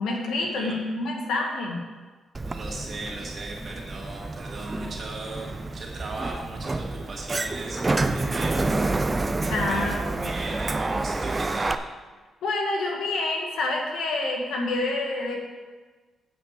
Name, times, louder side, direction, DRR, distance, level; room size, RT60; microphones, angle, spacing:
voice 1, 0.0-1.8 9.5-10.3 12.4-15.4, left 2 dB, 85° left, 0 dB, 1.9 m, -27 dB
Sliding door, 2.3-11.7, right 2 dB, 20° right, 0.4 m, -28 dB
voice 2, 2.4-8.9 9.5-11.8, right 2 dB, 40° right, -2 dB, 2.3 m, -38 dB
8.4 x 5.9 x 7.5 m, 1.3 s
cardioid pair, 145°, 0 cm